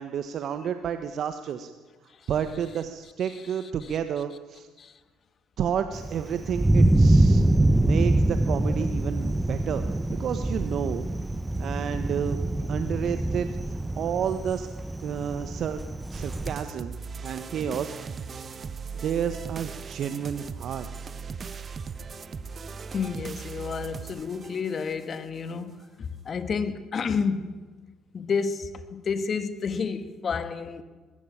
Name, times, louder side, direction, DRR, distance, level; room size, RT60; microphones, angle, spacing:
voice 1, 0.0-1.7 2.3-4.7 5.6-7.4 7.7-9.8 10.1-11.0 11.6-12.4 12.7-14.7 15.0-15.8 16.1-16.9 17.2-17.9 18.3-18.5 19.0-20.9, right 8 dB, 60° right, 1.3 m, -30 dB
Thunder, 5.9-16.5, right 1 dB, 10° right, 1.0 m, -24 dB
sound 1, 16.1-25.2, right 5 dB, 40° right, 1.3 m, -38 dB
voice 2, 22.9-27.6 28.1-30.8, left 5 dB, 45° left, 1.9 m, -30 dB
21.0 x 16.5 x 8.7 m
hypercardioid pair, 65°, 0 cm